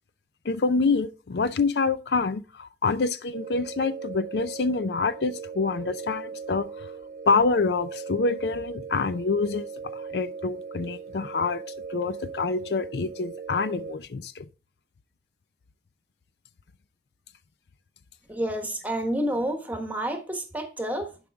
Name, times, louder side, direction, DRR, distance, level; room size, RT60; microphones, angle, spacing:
voice 1, 0.4-6.9 7.3-9.7 9.9-11.6 11.9-14.5, left 4 dB, 65° left, 0.5 m, -26 dB
sound 1, 3.3-14.0, right 5 dB, 45° right, 0.6 m, -39 dB
voice 2, 18.3-21.2, right 1 dB, 10° right, 1.2 m, -29 dB
11.0 x 5.0 x 3.5 m
head